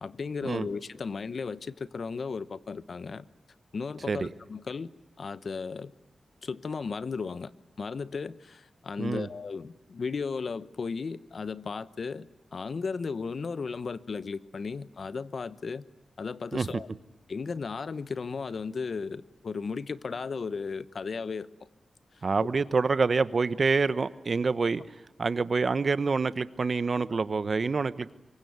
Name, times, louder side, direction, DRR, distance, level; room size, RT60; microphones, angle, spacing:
voice 1, 0.0-3.3 3.7-4.9 5.2-5.9 6.4-7.5 7.8-15.8 16.2-16.9 17.3-21.5 22.2-22.3, left 5 dB, 55° left, 15 dB, 1.0 m, -35 dB
voice 2, 22.2-24.8 25.2-28.1, right 4 dB, 45° right, 15 dB, 1.1 m, -27 dB
25.5 x 23.5 x 9.5 m, 0.88 s
wide cardioid pair, 105°, 0 cm